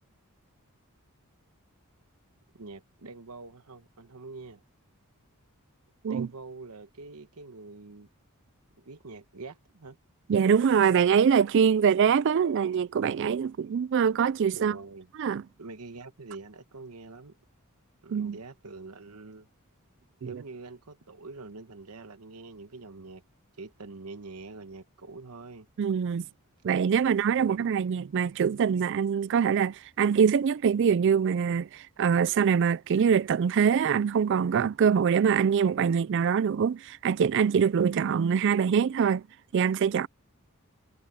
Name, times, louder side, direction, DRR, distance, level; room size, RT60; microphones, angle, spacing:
voice 1, 2.5-4.6 6.1-8.1 8.8-10.0 14.5-15.1 15.6-17.4 18.0-19.5 20.2-23.2 23.6-25.7 27.0-27.8, right 3 dB, 85° right, 1.1 m, -45 dB
voice 2, 10.3-14.8 15.2-15.4 18.1-18.4 20.2-20.4 25.8-26.3 26.6-39.2 39.5-40.1, right 7 dB, 55° right, 0.3 m, -24 dB
head